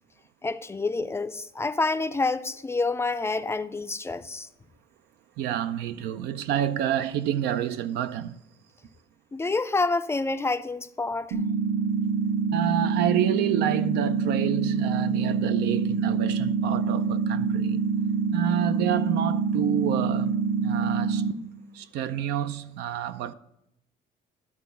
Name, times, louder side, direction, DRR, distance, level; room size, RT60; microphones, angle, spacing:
voice 1, 0.4-4.5 9.3-11.4, left 3 dB, 15° left, 0.4 m, -28 dB
voice 2, 5.4-8.3 12.5-17.8 18.3-20.3 20.6-21.2 21.7-23.3, right 10 dB, 85° right, 0.5 m, -28 dB
sound 1, 11.3-21.3, right 5 dB, 65° right, 0.9 m, -26 dB
12.0 x 4.1 x 5.7 m
cardioid pair, 110°, 17 cm